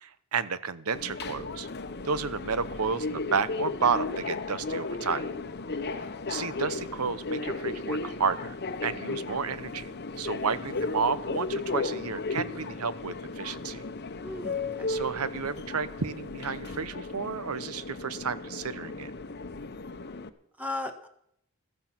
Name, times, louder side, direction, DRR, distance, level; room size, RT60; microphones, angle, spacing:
voice 1, 0.0-1.7 2.0-5.2 5.9-8.6 8.8-9.9 10.2-13.8 14.9-19.1, right 5 dB, 80° right, 15 dB, 0.9 m, -31 dB
Subway metro underground, 0.9-20.3, left 3 dB, 50° left, 0.9 m, -35 dB
voice 2, 9.0-9.4 14.2-14.9 20.6-21.1, left 2 dB, 5° right, 5 dB, 1.3 m, -38 dB
15.0 x 14.0 x 5.9 m, 0.72 s
head